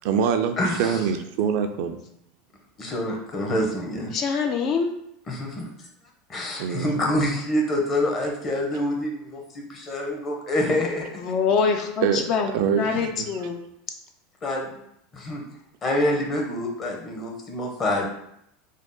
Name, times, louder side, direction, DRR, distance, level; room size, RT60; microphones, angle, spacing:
voice 1, 0.0-2.0 6.6-7.0 12.0-13.3, right 7 dB, 65° right, 7 dB, 0.4 m, -25 dB
voice 2, 0.6-1.0 2.8-4.1 5.3-5.7 6.3-11.2 14.4-14.7 15.1-15.4 15.8-18.1, left 1 dB, 30° left, 0 dB, 0.9 m, -26 dB
voice 3, 4.1-4.9 11.2-12.5 12.8-13.6, left 5 dB, 45° left, 4 dB, 0.4 m, -24 dB
3.5 x 2.0 x 3.8 m, 0.76 s
supercardioid pair, 115°, 0 cm